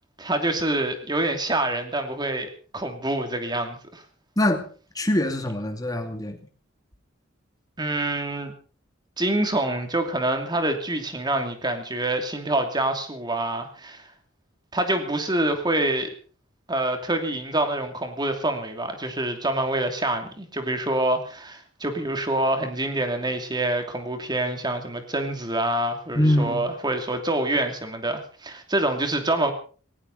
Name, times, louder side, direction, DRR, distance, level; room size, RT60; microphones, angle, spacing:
voice 1, 0.2-4.0 7.8-8.5 9.2-14.1 14.7-16.1 16.7-29.5, right 1 dB, 20° right, 6 dB, 2.8 m, -26 dB
voice 2, 4.4-4.7 4.9-6.4 26.1-26.7, left 1 dB, 20° left, 5 dB, 2.6 m, -23 dB
18.5 x 18.0 x 4.2 m, 0.40 s
head